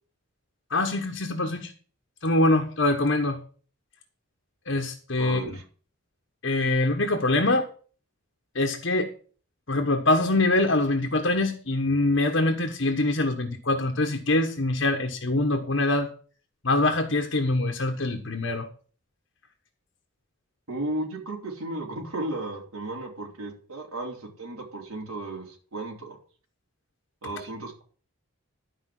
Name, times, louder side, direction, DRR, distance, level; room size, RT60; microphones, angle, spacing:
voice 1, 0.7-1.7 2.2-3.4 4.7-5.6 6.4-7.7 8.5-9.1 9.7-16.1 16.6-18.7, left 2 dB, 60° left, 1.2 m, -24 dB
voice 2, 5.2-5.6 20.7-26.2 27.2-27.8, right 2 dB, 80° right, 3.7 m, -34 dB
12.5 x 5.1 x 7.6 m
head